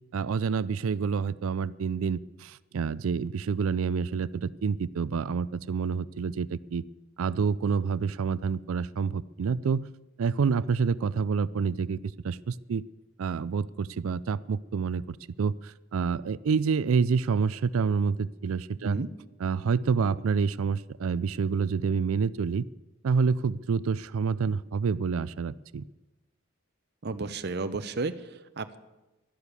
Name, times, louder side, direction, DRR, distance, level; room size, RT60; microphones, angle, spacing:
voice 1, 0.1-6.8 7.2-9.9 10.2-12.0 12.2-12.8 13.2-19.0 19.4-22.7 23.0-25.8, right 5 dB, 85° right, 18 dB, 0.4 m, -28 dB
voice 2, 27.0-28.8, right 3 dB, 50° right, 10 dB, 0.7 m, -33 dB
12.0 x 11.5 x 8.3 m, 1.1 s
head